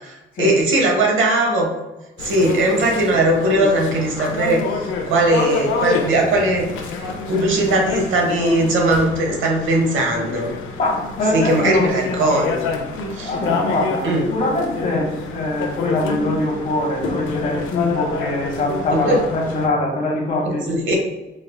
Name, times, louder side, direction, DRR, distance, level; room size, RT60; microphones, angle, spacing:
voice 1, 0.0-1.7 2.2-6.7 7.0-10.5 11.3-12.7 13.1-13.3 14.0-14.2 18.9-19.2 20.5-21.0, right 1 dB, 80° right, 1 dB, 0.9 m, -19 dB
sound 1, 2.2-19.7, left 4 dB, 85° left, 0.5 m, -28 dB
voice 2, 10.8-11.9 12.9-20.6, left 2 dB, 45° left, -3 dB, 0.9 m, -22 dB
4.5 x 2.3 x 2.2 m, 1.1 s
cardioid pair, 90°, 20 cm